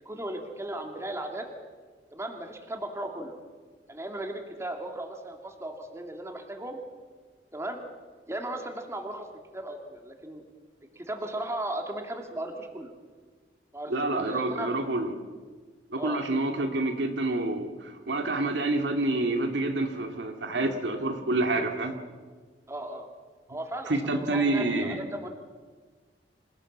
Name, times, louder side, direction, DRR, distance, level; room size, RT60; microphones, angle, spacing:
voice 1, 0.0-1.5 2.1-3.4 3.9-6.8 7.5-7.8 8.3-9.3 9.5-10.4 11.0-12.9 13.7-14.7 16.0-16.2 16.6-16.7 22.7-23.1 23.5-25.3, right 1 dB, 15° right, 3 dB, 2.4 m, -36 dB
voice 2, 13.9-15.1 15.9-21.9 23.9-25.0, right 2 dB, 90° right, 5 dB, 2.2 m, -28 dB
26.0 x 17.0 x 7.3 m, 1.5 s
head